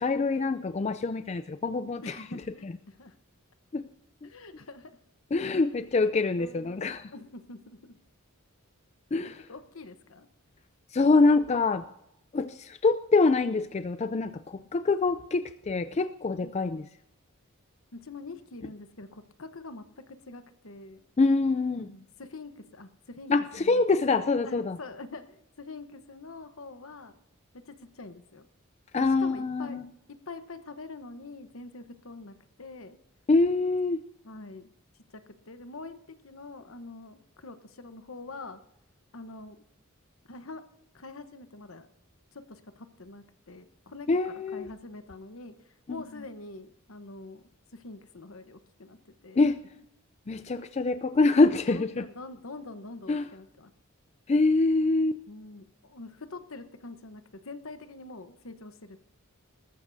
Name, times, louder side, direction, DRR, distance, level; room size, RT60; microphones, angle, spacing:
voice 1, 0.0-2.2 2.6-2.7 3.7-3.8 5.3-7.1 9.1-9.4 10.9-11.8 12.3-16.8 21.2-21.9 23.3-24.8 28.9-29.8 33.3-34.0 44.1-44.7 45.9-46.0 49.4-49.6 50.3-52.1 53.1-53.2 54.3-55.2, left 3 dB, 30° left, 11 dB, 0.4 m, -25 dB
voice 2, 2.0-3.1 4.2-5.0 6.4-6.8 7.1-8.0 9.5-10.3 16.4-16.8 17.9-21.0 21.8-23.9 24.4-27.1 27.5-28.5 29.0-29.8 30.1-33.0 34.2-34.7 35.1-38.6 39.1-39.6 40.3-40.6 40.9-41.9 42.3-47.4 47.7-49.5 51.7-53.7 54.9-59.0, left 3 dB, 70° left, 9 dB, 1.0 m, -45 dB
20.0 x 13.5 x 2.7 m, 0.81 s
head